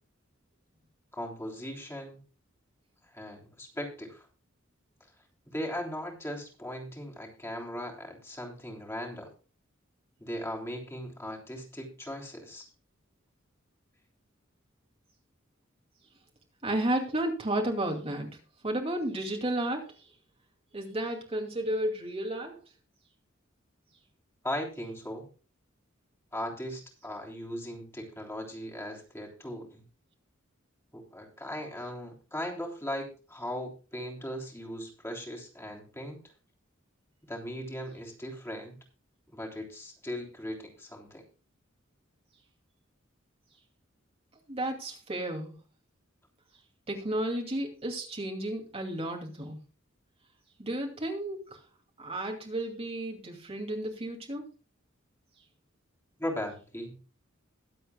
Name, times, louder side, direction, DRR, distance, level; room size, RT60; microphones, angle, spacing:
voice 1, 1.1-2.2 3.1-4.3 5.4-9.3 10.2-12.7 24.4-25.3 26.3-29.8 30.9-36.2 37.3-38.8 39.3-41.2 56.2-57.0, equal, 15° left, 0 dB, 3.4 m, -38 dB
voice 2, 16.6-18.3 18.6-20.0 20.7-22.6 44.5-45.6 46.9-49.6 50.6-51.6 52.0-54.4, right 1 dB, 30° right, 1 dB, 2.5 m, -32 dB
22.0 x 8.0 x 2.3 m, 0.34 s
head